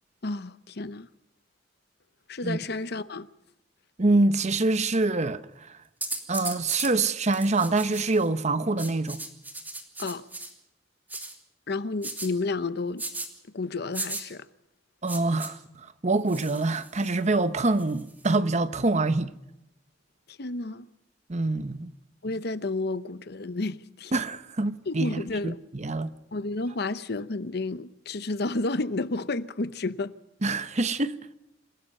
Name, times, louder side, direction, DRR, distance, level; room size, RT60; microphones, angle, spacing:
voice 1, 0.2-1.1 2.3-3.3 10.0-10.2 11.7-13.0 13.5-14.5 20.3-20.9 22.2-24.1 24.9-25.6 26.3-30.1, left 3 dB, 60° left, 0.9 m, -31 dB
voice 2, 4.0-5.8 6.3-9.2 15.0-19.3 21.3-21.9 24.1-26.1 30.4-31.1, right 2 dB, 40° right, 0.9 m, -25 dB
sound 1, 6.0-6.9 7.3-8.3 8.8-10.5 11.1-11.3 12.0-12.3 13.0-13.3 13.9-14.2 15.1-15.5 16.3-17.2 17.8-18.3, right 2 dB, 10° right, 2.8 m, -36 dB
27.0 x 17.5 x 5.5 m
head